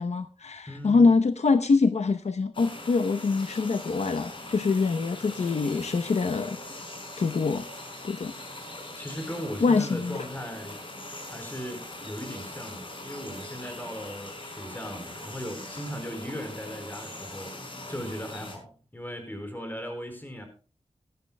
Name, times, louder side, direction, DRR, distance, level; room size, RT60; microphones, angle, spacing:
voice 1, 0.0-6.6 7.2-7.7 8.0-8.3 9.6-10.2, left 4 dB, 70° left, 8 dB, 0.9 m, -24 dB
voice 2, 0.7-1.1 8.9-10.8 11.3-20.4, equal, 15° left, 6 dB, 4.6 m, -38 dB
sound 1, 2.5-18.5, left 1 dB, 45° left, 5.9 m, -41 dB
19.0 x 13.0 x 2.2 m, 0.37 s
wide cardioid pair, 110°, 12 cm